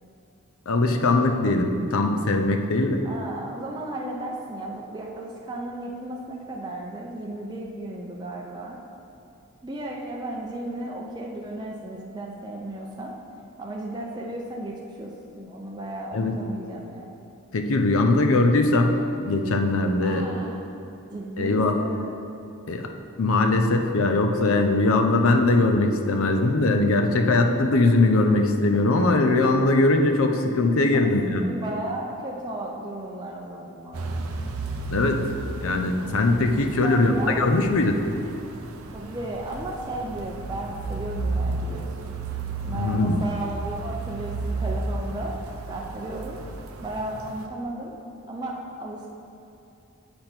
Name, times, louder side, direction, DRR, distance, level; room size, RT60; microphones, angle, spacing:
voice 1, 0.7-3.0 16.1-16.4 17.5-20.2 21.4-21.7 22.7-22.9 23.2-31.4 34.9-35.2 35.6-38.0 42.7-43.2, left 2 dB, 65° left, 4 dB, 0.6 m, -21 dB
voice 2, 3.0-8.8 9.6-13.1 13.6-17.1 20.0-20.7 21.1-22.3 30.9-34.3 36.8-37.5 38.9-42.2 42.6-45.3 45.7-46.4 46.8-47.9 48.3-49.1, right 1 dB, 20° right, -3 dB, 0.5 m, -35 dB
sound 1, 33.9-47.4, right 3 dB, 75° right, 0.6 m, -33 dB
7.8 x 5.2 x 4.4 m, 2.8 s
head